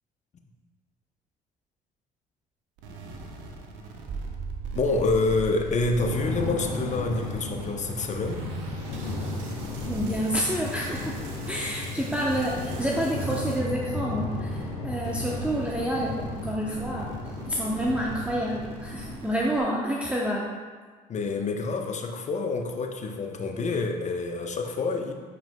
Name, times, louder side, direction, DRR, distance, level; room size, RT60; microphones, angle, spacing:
sound 1, 2.8-14.7 15.0-19.6, right 3 dB, 65° right, 0.9 m, -45 dB
sound 2, 4.1-10.4, right 6 dB, 35° right, 0.4 m, -39 dB
voice 1, 4.7-8.4 21.1-25.1, left 3 dB, 35° left, 4 dB, 0.8 m, -27 dB
sound 3, 6.0-19.1, left 2 dB, 85° left, 1.2 m, -34 dB
voice 2, 9.9-11.2 11.5-17.2 17.5-20.5, equal, 5° right, -3 dB, 0.8 m, -28 dB
9.1 x 4.9 x 2.3 m, 1.5 s
hypercardioid pair, 65°, 20 cm